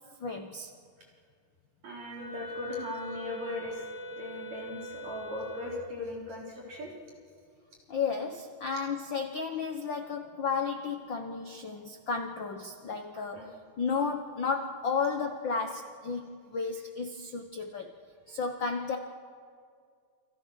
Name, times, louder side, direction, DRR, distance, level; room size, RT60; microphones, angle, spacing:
voice 1, 0.2-0.7 7.9-18.0 18.3-19.0, left 5 dB, 80° left, 5 dB, 1.0 m, -33 dB
voice 2, 1.8-3.8 4.2-6.9 13.1-13.5 18.3-18.4, left 2 dB, 50° right, -3 dB, 5.0 m, -39 dB
Wind instrument woodwind instrument, 2.1-6.0, right 1 dB, 25° left, 5.4 m, -42 dB
29.0 x 25.5 x 6.5 m, 2.2 s
omnidirectional pair, 4.0 m